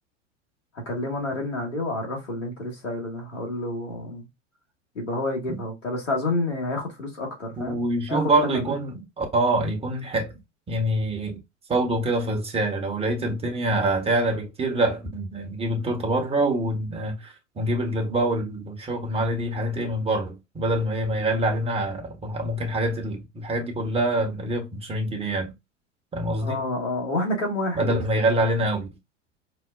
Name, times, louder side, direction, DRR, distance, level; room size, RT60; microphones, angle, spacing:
voice 1, 0.9-4.3 5.0-7.8 8.1-8.7 26.4-28.0, left 2 dB, 80° left, 1.7 m, -29 dB
voice 2, 7.6-10.4 10.7-11.4 11.7-25.5 26.1-26.6 27.8-28.9, right 1 dB, 15° right, 1.0 m, -25 dB
4.9 x 2.1 x 2.3 m
figure-of-eight pair, 85°, 37 cm